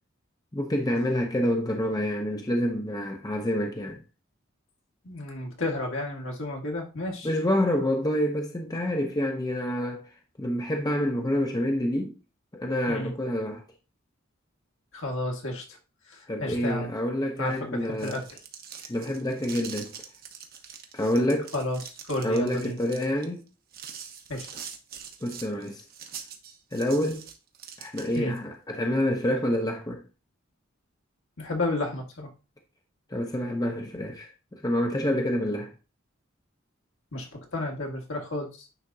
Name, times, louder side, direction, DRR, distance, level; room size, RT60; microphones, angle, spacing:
voice 1, 0.5-4.0 7.2-10.0 10.4-12.2 12.5-13.6 16.3-18.2 18.9-19.9 20.9-21.5 22.2-23.5 25.2-25.8 26.7-27.2 27.8-30.0 33.1-35.7, left 1 dB, 20° left, 0.6 m, -27 dB
voice 2, 5.0-7.3 12.9-13.1 14.9-15.8 16.1-16.9 17.4-18.4 21.5-21.8 22.0-22.8 24.3-24.5 28.2-28.3 31.4-32.3 37.1-38.7, left 2 dB, 70° left, 1.7 m, -32 dB
sound 1, 17.8-28.4, right 7 dB, 50° right, 0.9 m, -44 dB
9.7 x 3.6 x 2.7 m
head